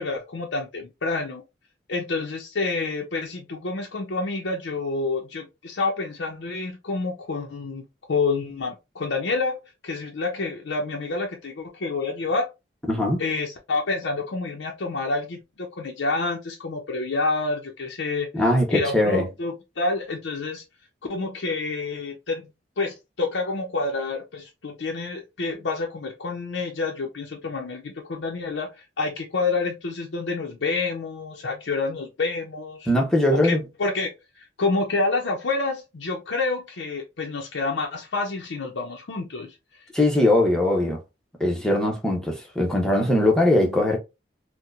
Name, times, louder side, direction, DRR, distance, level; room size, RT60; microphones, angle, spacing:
voice 1, 0.0-1.4 1.9-7.8 8.1-12.5 13.2-20.6 21.1-22.5 22.8-28.7 29.0-32.9 33.3-39.5, left 3 dB, 80° left, 0.6 m, -28 dB
voice 2, 12.9-13.2 18.3-19.2 32.9-33.6 39.9-41.0 41.4-44.0, left 1 dB, 5° left, 0.7 m, -21 dB
4.3 x 2.1 x 2.5 m
head